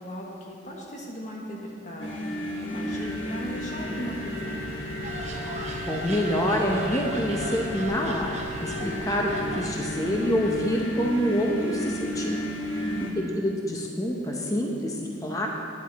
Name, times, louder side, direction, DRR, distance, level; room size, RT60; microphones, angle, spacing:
voice 1, 0.0-2.2 2.6-4.8 12.8-13.4, equal, 40° left, -1 dB, 1.5 m, -37 dB
sound 1, 2.0-13.1, left 1 dB, 85° left, 1.6 m, -33 dB
sound 2, 5.0-11.0, right 2 dB, 35° right, 0.8 m, -38 dB
voice 2, 5.8-12.4 13.2-15.5, equal, 15° left, 0 dB, 0.8 m, -27 dB
10.5 x 9.9 x 4.1 m, 2.3 s
head